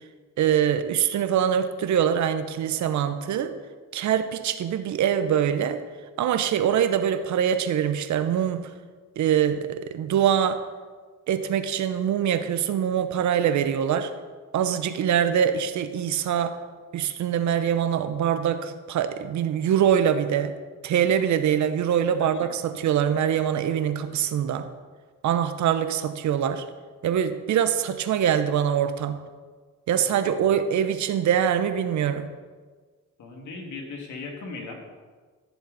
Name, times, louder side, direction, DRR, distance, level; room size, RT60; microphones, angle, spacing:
voice 1, 0.4-3.5 3.9-5.8 6.2-8.6 9.2-10.6 11.3-14.1 14.5-16.6 16.9-20.5 20.8-24.7 25.2-26.6 27.0-29.2 29.9-32.3, right 9 dB, 70° right, 10 dB, 0.9 m, -24 dB
voice 2, 22.2-22.9 30.0-30.4 33.2-34.8, left 3 dB, 75° left, 1 dB, 2.4 m, -39 dB
15.0 x 7.1 x 4.2 m, 1.4 s
cardioid pair, 90°, 30 cm